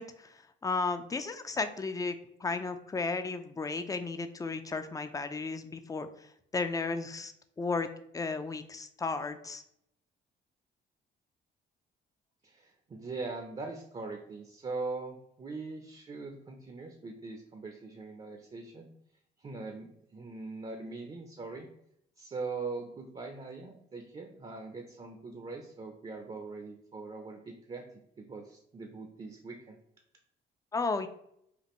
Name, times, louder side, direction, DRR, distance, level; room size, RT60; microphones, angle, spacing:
voice 1, 0.0-7.3 7.6-7.9 8.1-9.6 30.7-31.1, left 4 dB, 15° left, 9 dB, 0.4 m, -34 dB
voice 2, 12.4-18.9 19.4-21.7 22.2-27.8 28.2-29.8, right 3 dB, 30° right, 4 dB, 0.6 m, -41 dB
5.1 x 2.5 x 3.0 m, 0.74 s
cardioid pair, 90°, 20 cm